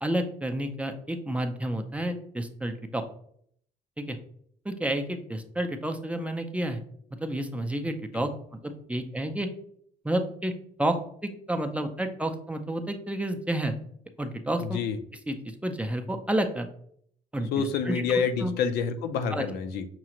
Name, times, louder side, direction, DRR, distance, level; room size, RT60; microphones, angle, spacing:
voice 1, 0.0-3.0 4.0-4.2 4.7-6.8 7.2-8.3 8.6-9.5 10.0-10.5 10.8-11.0 11.5-13.7 14.2-14.6 15.3-15.4 15.6-16.7 17.3-18.5 19.3-19.4, right 1 dB, 10° right, 5 dB, 0.4 m, -30 dB
voice 2, 14.6-15.0 17.5-19.9, left 6 dB, 75° left, 9 dB, 0.5 m, -28 dB
5.8 x 2.4 x 2.9 m, 0.64 s
cardioid pair, 110°, 17 cm